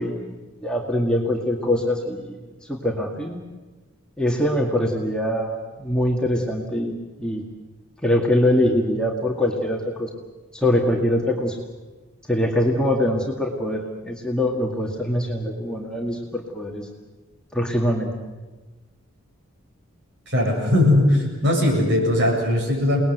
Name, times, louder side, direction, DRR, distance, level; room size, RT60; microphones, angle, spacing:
voice 1, 0.0-3.4 4.2-7.4 8.0-10.1 10.5-11.6 12.3-16.9 17.5-18.2, left 1 dB, 5° left, -1 dB, 2.1 m, -23 dB
voice 2, 20.3-23.0, left 1 dB, 55° right, 0 dB, 7.7 m, -19 dB
29.5 x 20.0 x 8.1 m, 1.3 s
head